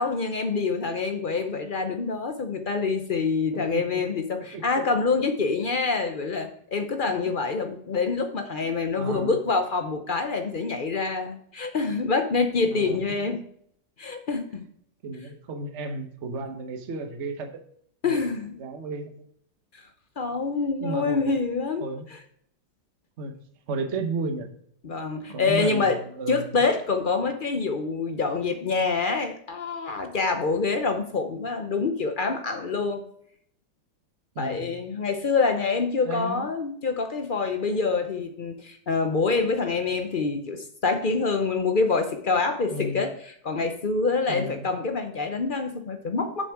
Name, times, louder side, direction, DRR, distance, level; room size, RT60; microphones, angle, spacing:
voice 1, 0.0-13.4 14.0-14.6 18.0-18.6 19.7-19.8 20.2-21.9 24.8-26.0 26.3-33.0 34.4-43.1 43.4-46.5, left 4 dB, 70° left, 6 dB, 0.4 m, -26 dB
voice 2, 3.5-4.0 4.5-4.8 8.6-9.4 12.7-13.3 15.0-17.6 18.0-18.2 18.6-19.1 20.8-21.4 21.8-22.0 23.2-23.4 23.7-24.5 25.3-26.6 34.3-34.7 36.0-36.5 42.7-43.0 44.3-44.7, right 3 dB, 45° right, 5 dB, 1.1 m, -33 dB
7.2 x 6.8 x 4.6 m, 0.65 s
omnidirectional pair, 2.1 m